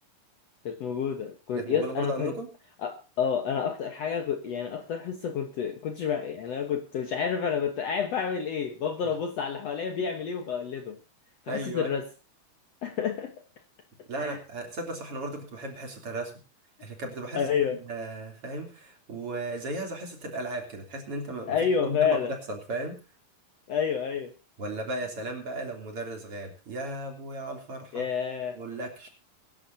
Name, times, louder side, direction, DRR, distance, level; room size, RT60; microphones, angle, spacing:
voice 1, 0.7-2.3 2.8-11.0 11.5-12.1 12.8-13.3 14.2-14.4 17.3-17.8 21.5-22.3 23.7-24.3 27.9-28.6, left 7 dB, 60° left, 6 dB, 2.1 m, -29 dB
voice 2, 1.6-2.5 11.5-11.9 14.1-16.3 16.8-22.2 22.5-23.0 24.6-28.1 28.5-29.1, right 1 dB, 40° right, 3 dB, 4.0 m, -35 dB
24.0 x 11.0 x 2.8 m, 0.33 s
omnidirectional pair, 3.9 m